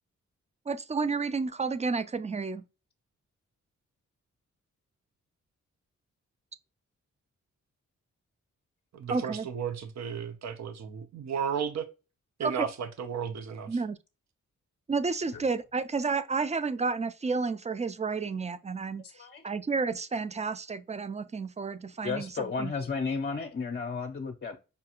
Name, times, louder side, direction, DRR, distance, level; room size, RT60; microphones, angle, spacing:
voice 1, 0.7-2.6 9.1-9.5 12.4-12.7 13.7-14.0 14.9-19.0 19.4-22.3 22.6-22.7, right 4 dB, 25° right, 0.4 m, -31 dB
voice 2, 8.9-11.9 12.4-13.8, right 7 dB, 60° right, 0.6 m, -34 dB
voice 3, 19.0-19.4 22.0-24.6, left 4 dB, 35° left, 0.6 m, -33 dB
5.3 x 2.3 x 2.9 m
cardioid pair, 60°, 31 cm